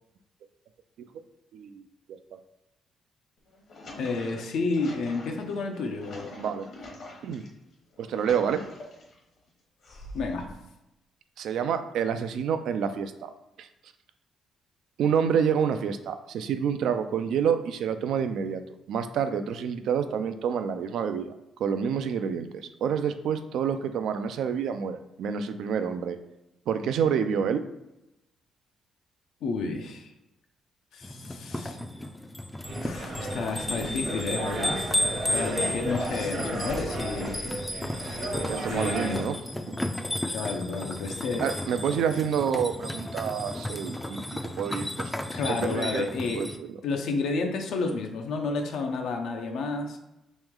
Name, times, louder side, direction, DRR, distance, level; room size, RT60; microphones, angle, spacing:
voice 1, 1.5-2.2 6.4-6.7 7.2-7.4 8.0-8.6 11.4-13.3 13.6-13.7 15.0-18.6 18.9-21.3 21.6-26.2 26.7-27.6 38.5-39.4 39.7-39.8 41.4-44.2 44.6-45.1 45.5-46.1 46.3-46.7, right 7 dB, 75° right, 9 dB, 0.3 m, -28 dB
sound 1, 3.4-7.5 7.9-9.2 9.8-10.5, left 1 dB, 60° left, 0.9 m, -44 dB
voice 2, 4.0-6.3 10.1-10.5 29.4-30.1 30.9-31.8 32.8-35.0 35.3-37.4 38.6-39.3 40.3-41.5 45.3-46.4 46.8-50.0, left 3 dB, 75° left, 3 dB, 0.5 m, -31 dB
sound 2, 31.0-46.6, left 1 dB, 10° left, 0.3 m, -34 dB
sound 3, 32.6-39.3, right 1 dB, 60° right, 1.0 m, -34 dB
3.1 x 3.0 x 3.6 m, 0.91 s
cardioid pair, 90°, 0 cm